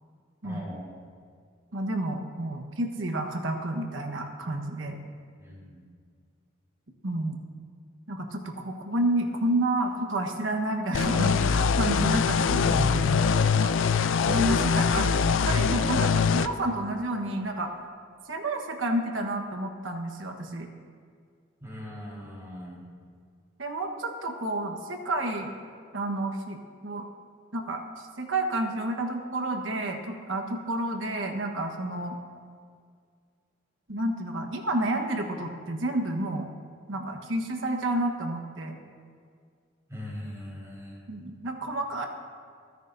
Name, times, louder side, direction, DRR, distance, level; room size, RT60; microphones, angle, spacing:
voice 1, 0.4-0.8 5.4-5.8 12.7-13.0 21.6-22.8 39.9-41.0, equal, 15° right, -6 dB, 4.3 m, -38 dB
voice 2, 1.7-5.0 7.0-7.4 8.1-12.8 13.4-13.8 14.2-17.8 18.3-20.7 23.6-25.5 25.9-26.6 26.8-27.0 27.5-32.2 33.9-36.5 36.9-38.8 41.1-42.1, right 1 dB, 75° right, 4 dB, 1.3 m, -30 dB
sound 1, 10.9-16.5, left 5 dB, 70° left, 0.4 m, -23 dB
28.5 x 10.0 x 2.7 m, 2.1 s
head